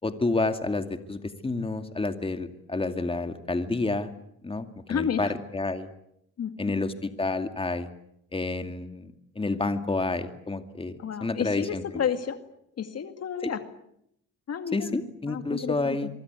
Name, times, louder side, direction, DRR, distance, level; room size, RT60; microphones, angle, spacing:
voice 1, 0.0-4.1 4.4-5.9 6.6-7.9 8.3-10.9 11.2-11.8 13.4-13.5 14.7-16.1, left 3 dB, 20° left, 8 dB, 2.5 m, -29 dB
voice 2, 4.9-5.3 6.4-6.5 11.0-12.4 12.8-13.6 14.5-15.0 15.3-16.0, left 7 dB, 55° left, 9 dB, 2.2 m, -31 dB
25.0 x 24.0 x 8.3 m, 0.75 s
cardioid pair, 90°, 30 cm